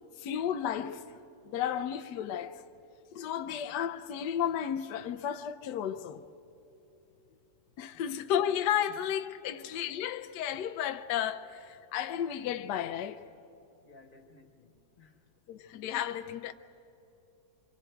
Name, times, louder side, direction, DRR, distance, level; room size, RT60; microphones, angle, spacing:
voice 1, 0.2-1.0 1.5-2.6 3.1-6.2 7.8-13.2 15.5-16.5, left 9 dB, 70° left, 1.2 m, -33 dB
voice 2, 9.4-9.9 13.8-15.3, left 3 dB, 30° left, 1.2 m, -59 dB
27.5 x 24.5 x 4.5 m
omnidirectional pair, 2.0 m